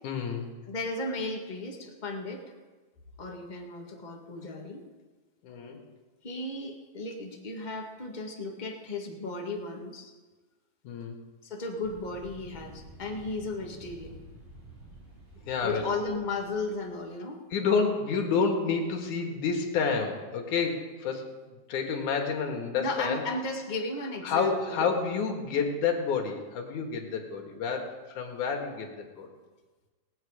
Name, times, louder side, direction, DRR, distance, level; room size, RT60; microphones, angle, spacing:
voice 1, 0.0-0.5 5.4-5.8 10.8-11.2 15.4-15.8 17.5-23.2 24.2-29.3, left 5 dB, 75° left, 3 dB, 3.1 m, -29 dB
voice 2, 0.7-2.4 3.2-4.8 6.2-10.1 11.4-14.2 15.6-17.4 22.8-24.9, left 2 dB, 25° left, 1 dB, 1.0 m, -35 dB
sound 1, 11.8-17.1, right 2 dB, 90° right, 4.9 m, -50 dB
19.5 x 9.0 x 5.0 m, 1.3 s
omnidirectional pair, 3.6 m